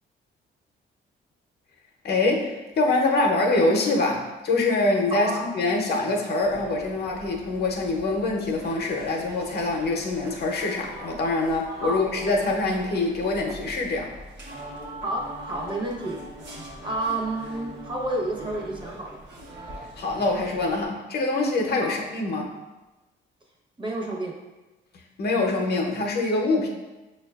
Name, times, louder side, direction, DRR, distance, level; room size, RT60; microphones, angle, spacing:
voice 1, 2.0-14.1 20.0-22.5 25.2-26.7, left 2 dB, 55° left, 0 dB, 0.7 m, -24 dB
voice 2, 5.1-5.4 11.8-12.0 15.0-16.2 16.8-19.2 21.8-21.9 23.8-24.3, right 2 dB, 25° right, -1 dB, 0.9 m, -30 dB
sound 1, 6.4-20.9, equal, 60° right, 0.9 m, -41 dB
6.0 x 2.3 x 2.3 m, 1.1 s
cardioid pair, 90°, 20 cm